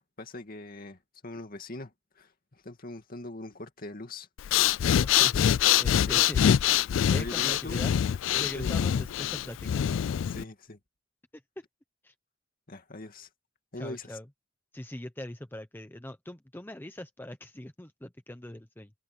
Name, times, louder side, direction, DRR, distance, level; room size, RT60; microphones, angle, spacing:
voice 1, 0.0-4.3 6.1-6.3 7.1-7.9 8.3-9.1 10.3-10.8 12.7-13.3 13.7-14.2, left 2 dB, 45° left, 2.5 m, -41 dB
Breathing, 4.4-10.4, left 10 dB, 70° left, 0.3 m, -24 dB
voice 2, 4.9-6.6 7.1-7.9 8.4-9.8 11.6-11.7 12.0-12.1 13.8-14.3 14.7-18.9, left 1 dB, 10° left, 0.8 m, -41 dB
open air
head